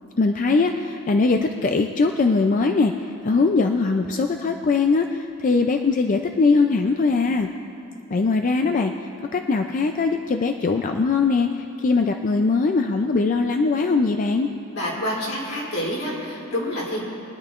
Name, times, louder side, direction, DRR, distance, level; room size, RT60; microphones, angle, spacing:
voice 1, 0.2-2.9 3.2-7.5 8.1-8.9 9.3-14.5, left 4 dB, 35° left, 4 dB, 0.4 m, -21 dB
voice 2, 14.7-17.0, equal, 75° left, -5 dB, 3.2 m, -28 dB
22.5 x 10.5 x 2.5 m, 2.8 s
head